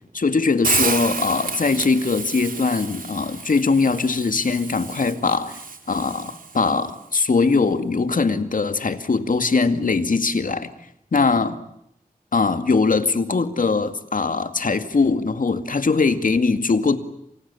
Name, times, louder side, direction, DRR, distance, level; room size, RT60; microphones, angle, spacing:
voice 1, 0.1-5.6 5.9-10.7 11.1-11.6 12.3-17.0, left 4 dB, 65° left, 10 dB, 2.2 m, -21 dB
Hiss, 0.6-6.7, right 4 dB, 70° right, 3.4 m, -30 dB
28.5 x 27.5 x 7.1 m, 0.77 s
wide cardioid pair, 80°, 15 cm